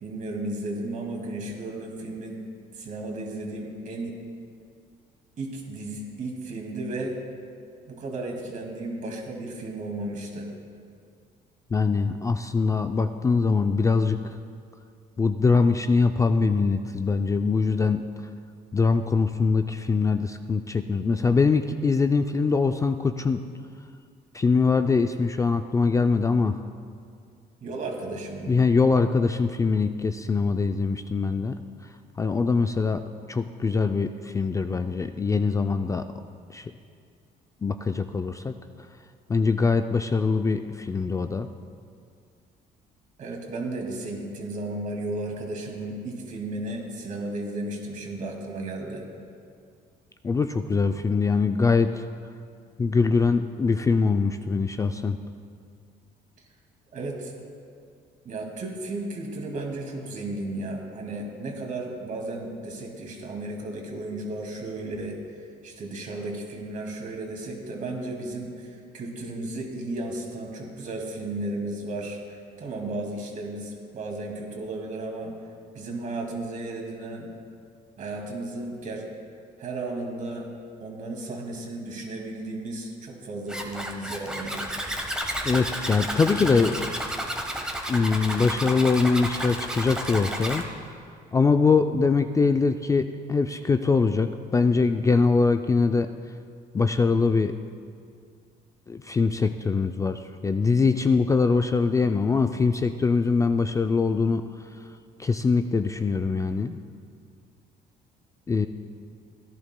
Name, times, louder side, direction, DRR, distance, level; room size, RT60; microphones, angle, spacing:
voice 1, 0.0-2.4 2.7-4.2 5.4-7.2 7.9-10.5 27.6-28.6 43.2-49.0 56.9-57.4 58.2-65.2 65.6-75.3 75.7-77.3 78.0-79.1 79.6-80.5 80.8-84.7, right 2 dB, 50° right, 1 dB, 2.2 m, -34 dB
voice 2, 11.7-14.4 15.2-18.0 18.7-23.4 24.3-26.6 28.5-31.6 32.2-33.0 33.3-36.0 36.5-36.7 37.6-38.5 39.3-41.5 50.2-52.0 52.8-55.2 85.4-86.8 87.9-90.7 91.3-96.1 96.7-97.5 98.9-104.4 104.8-104.9 105.2-106.8 108.5-108.7, left 4 dB, 20° left, 7 dB, 0.3 m, -23 dB
Zipper (clothing), 83.5-90.6, equal, 5° right, 1.3 m, -31 dB
17.0 x 11.0 x 2.2 m, 2.2 s
cardioid pair, 110°, 17 cm